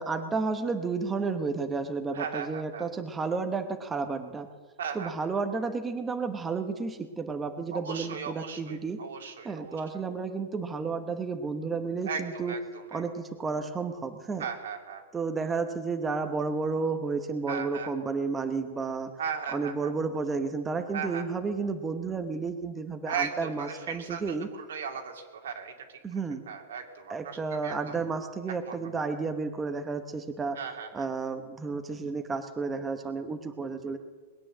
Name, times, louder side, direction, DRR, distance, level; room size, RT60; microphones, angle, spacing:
voice 1, 0.0-4.5 4.9-9.0 9.4-12.5 12.9-14.4 15.1-19.1 19.5-24.5 26.0-26.4 27.1-30.6 30.9-34.0, right 4 dB, 15° right, 7 dB, 0.9 m, -32 dB
voice 2, 2.1-2.9 4.8-5.1 7.7-9.8 12.0-13.0 14.4-15.0 17.5-17.9 19.2-19.9 20.9-21.2 23.0-26.2 26.5-28.0 28.7-28.8 30.6-31.1, right 6 dB, 90° right, 3 dB, 2.5 m, -37 dB
20.5 x 8.9 x 7.6 m, 1.4 s
supercardioid pair, 150°, 0 cm